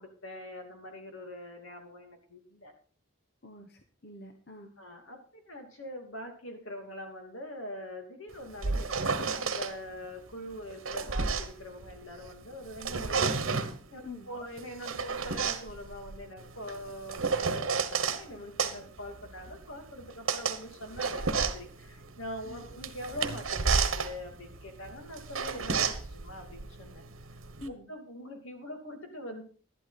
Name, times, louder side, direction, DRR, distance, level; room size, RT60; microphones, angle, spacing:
voice 1, 0.0-2.7 4.8-13.4 13.9-27.0 27.7-29.4, left 1 dB, 75° left, 4 dB, 2.8 m, -43 dB
voice 2, 3.4-4.7 14.0-14.3 22.4-22.7 27.6-27.9, left 2 dB, 50° left, 5 dB, 1.1 m, -46 dB
sound 1, 8.3-9.7 10.5-12.3 12.7-13.8 14.6-18.2 18.6-27.7, right 5 dB, 80° right, 1.2 m, -32 dB
11.5 x 11.5 x 4.2 m, 0.42 s
head